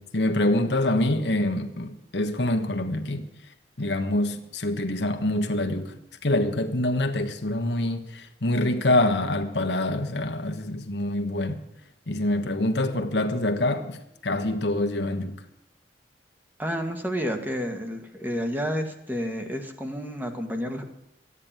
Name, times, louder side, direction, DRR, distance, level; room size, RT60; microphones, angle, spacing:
voice 1, 0.0-3.2 3.8-11.6 12.1-15.4, left 1 dB, 80° left, 1.4 m, -25 dB
voice 2, 16.6-20.8, equal, 10° right, 1.7 m, -30 dB
14.5 x 9.9 x 8.9 m
head